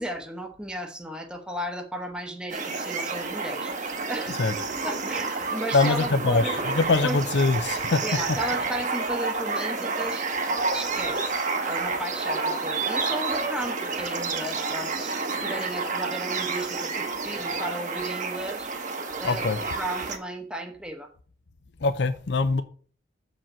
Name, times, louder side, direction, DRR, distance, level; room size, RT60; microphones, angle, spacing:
voice 1, 0.0-4.4 4.8-6.5 7.0-7.2 8.0-10.3 10.7-18.7 19.2-21.1, right 1 dB, 5° right, 0.9 m, -35 dB
sound 1, 2.5-20.2, right 4 dB, 40° right, 1.2 m, -29 dB
voice 2, 5.7-8.0 19.2-19.6 21.8-22.6, left 3 dB, 65° left, 0.5 m, -23 dB
7.2 x 5.2 x 6.1 m
head